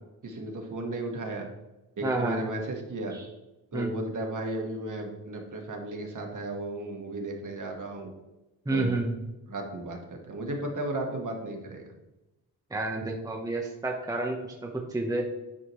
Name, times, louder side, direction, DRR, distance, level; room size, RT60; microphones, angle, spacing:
voice 1, 0.2-1.5 2.0-3.1 3.7-8.1 8.7-8.9 9.5-11.8, right 2 dB, 45° right, 2 dB, 1.6 m, -34 dB
voice 2, 2.0-2.5 3.1-3.3 3.7-3.9 8.7-9.1 12.7-15.2, right 2 dB, 10° right, 0 dB, 0.9 m, -30 dB
9.8 x 4.9 x 3.1 m, 1.0 s
cardioid pair, 100°, 42 cm